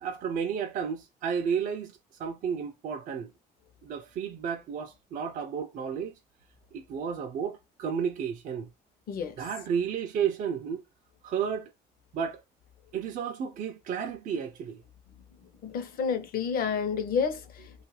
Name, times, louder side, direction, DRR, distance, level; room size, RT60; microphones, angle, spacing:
voice 1, 0.0-1.9 2.2-3.3 3.8-6.1 6.7-8.7 9.4-10.8 11.2-11.7 12.1-12.4 12.9-14.8, right 7 dB, 50° right, 0.4 m, -32 dB
voice 2, 15.6-17.8, left 6 dB, 60° left, 0.7 m, -30 dB
2.6 x 2.4 x 3.1 m
cardioid pair, 110°, 17 cm